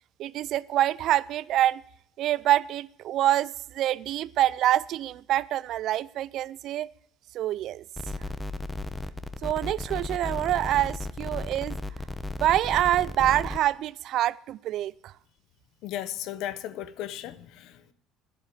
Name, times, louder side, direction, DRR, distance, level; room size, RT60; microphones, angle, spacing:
voice 1, 0.2-1.8 2.2-6.9 7.3-7.8 9.4-11.8 12.4-15.1, right 13 dB, 60° right, 0.4 m, -26 dB
sound 1, 8.0-13.6, left 2 dB, 10° left, 1.0 m, -35 dB
voice 2, 15.8-17.9, left 12 dB, 70° left, 0.9 m, -36 dB
10.5 x 7.7 x 9.6 m
supercardioid pair, 80°, 0 cm